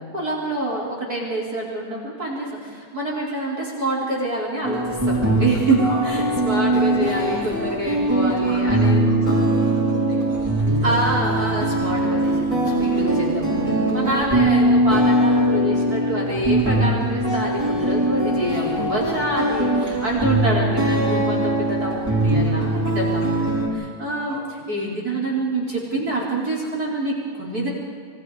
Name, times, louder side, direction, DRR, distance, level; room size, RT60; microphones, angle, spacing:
voice 1, 0.0-9.2 10.8-27.7, right 1 dB, 30° right, -3 dB, 4.7 m, -26 dB
sound 1, 4.6-23.7, right 1 dB, 5° right, 5.6 m, -21 dB
voice 2, 5.8-6.6 8.5-11.2 24.3-24.4, equal, 50° left, -4 dB, 8.7 m, -37 dB
27.5 x 24.0 x 5.0 m, 2.2 s
omnidirectional pair, 3.5 m